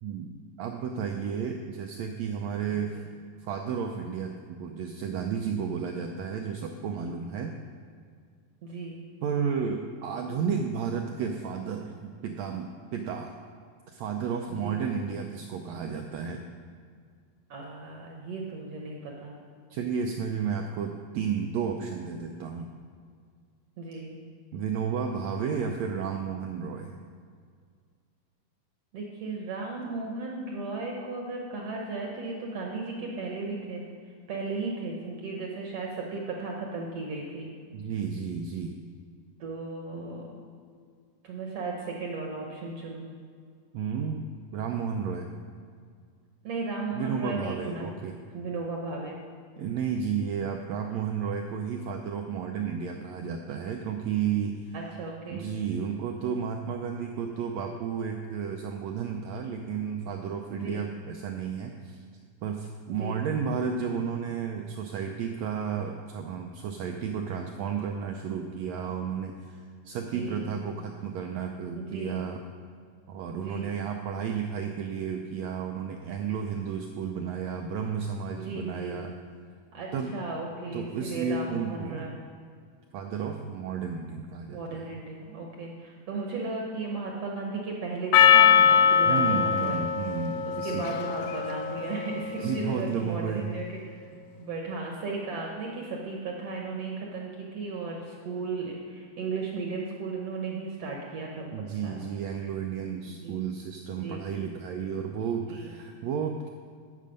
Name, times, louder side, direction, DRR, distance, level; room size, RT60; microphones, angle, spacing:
voice 1, 0.0-3.0 3.4-7.6 9.2-13.4 13.9-16.4 19.7-22.7 24.5-27.0 37.7-38.8 43.7-44.3 44.5-45.3 46.9-48.2 49.6-54.7 55.3-62.0 62.4-72.4 73.1-79.1 79.9-80.1 80.7-82.1 82.9-84.9 89.1-91.0 92.4-93.6 101.5-106.5, right 6 dB, 85° right, 3 dB, 1.5 m, -32 dB
voice 2, 2.7-3.0 6.9-7.4 8.6-9.0 14.5-14.8 17.5-19.4 23.8-24.1 28.9-37.5 39.4-40.3 41.2-43.1 46.4-47.9 48.3-49.2 54.7-55.5 60.5-60.8 62.9-63.2 70.1-70.5 71.8-72.2 73.4-73.8 78.3-79.0 79.7-82.2 84.5-89.8 90.5-94.1 94.4-101.5 101.8-102.0 103.2-103.4 104.0-104.5 105.5-105.7, right 3 dB, 65° right, -1 dB, 1.7 m, -35 dB
Percussion, 88.1-92.7, left 8 dB, 80° left, 1.8 m, -22 dB
12.0 x 6.5 x 5.2 m, 2.1 s
omnidirectional pair, 3.7 m